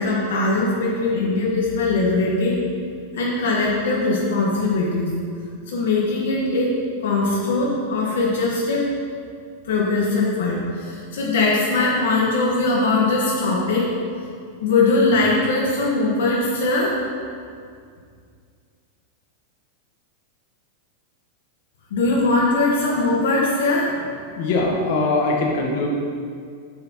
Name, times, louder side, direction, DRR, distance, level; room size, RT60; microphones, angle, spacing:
voice 1, 0.0-2.6 3.1-5.1 5.7-8.8 9.6-14.0 14.6-17.0 21.9-24.1, left 3 dB, 75° left, -4 dB, 1.4 m, -21 dB
voice 2, 24.3-25.9, left 3 dB, 45° left, 0 dB, 1.2 m, -21 dB
7.8 x 7.7 x 3.0 m, 2.2 s
supercardioid pair, 180°, 0 cm